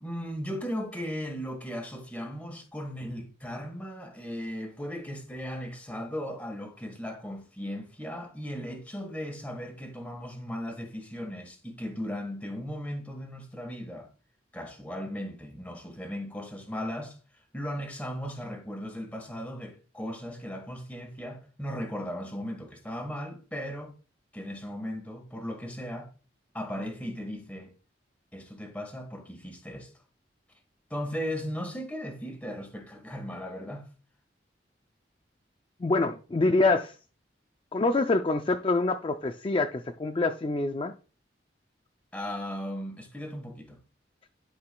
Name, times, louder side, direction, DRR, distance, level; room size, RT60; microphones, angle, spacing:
voice 1, 0.0-14.1 14.5-17.2 17.5-23.9 24.3-26.1 26.5-27.7 28.3-29.9 30.9-33.9 42.1-43.8, equal, 10° left, 1.4 m, -37 dB
voice 2, 35.8-37.0 37.7-40.9, left 3 dB, 30° left, 0.4 m, -26 dB
11.5 x 4.9 x 2.2 m
head